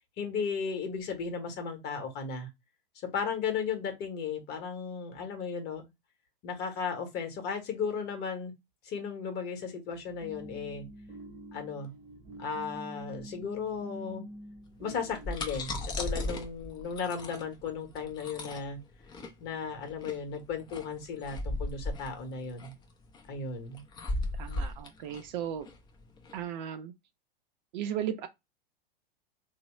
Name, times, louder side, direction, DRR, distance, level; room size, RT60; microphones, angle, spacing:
voice 1, 0.2-2.5 3.1-5.8 6.4-8.5 8.8-10.8 11.5-11.9 12.4-14.2 14.8-18.8 19.4-22.7 23.3-23.8, left 6 dB, 35° left, 0.9 m, -35 dB
sound 1, 9.8-15.5, right 1 dB, 15° right, 0.8 m, -46 dB
sound 2, 14.9-26.4, left 2 dB, 15° left, 0.4 m, -37 dB
voice 2, 24.4-25.7 26.3-26.9 27.7-28.3, right 10 dB, 50° right, 0.5 m, -35 dB
2.9 x 2.0 x 2.9 m
hypercardioid pair, 105°, 29 cm